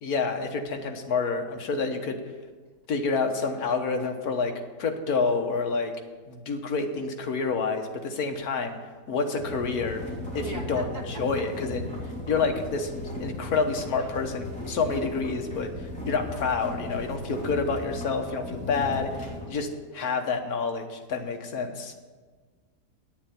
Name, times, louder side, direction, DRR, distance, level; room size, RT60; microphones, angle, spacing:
voice 1, 0.0-2.2 2.9-4.5 4.8-5.9 6.3-8.8 9.1-10.0 10.3-11.8 12.3-12.9 13.2-21.9, left 4 dB, 70° left, 4 dB, 1.6 m, -28 dB
sound 1, 9.3-19.5, left 1 dB, 5° left, 3.0 m, -37 dB
voice 2, 10.4-11.0 11.4-11.5 11.9-12.0, right 2 dB, 80° right, 0 dB, 2.3 m, -39 dB
9.5 x 7.0 x 8.4 m, 1.4 s
omnidirectional pair, 1.7 m